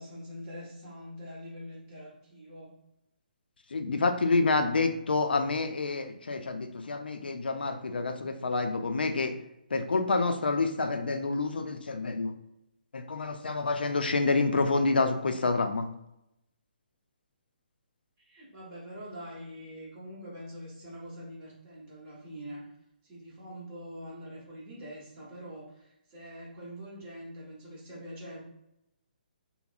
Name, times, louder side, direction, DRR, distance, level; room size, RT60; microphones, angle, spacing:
voice 1, 0.0-2.7 18.2-22.7 23.0-28.4, equal, 30° right, -5 dB, 1.1 m, -44 dB
voice 2, 3.7-9.3 9.7-12.3 12.9-15.9, left 3 dB, 80° left, 7 dB, 0.4 m, -28 dB
3.3 x 2.0 x 2.5 m, 0.83 s
figure-of-eight pair, 140°, 5 cm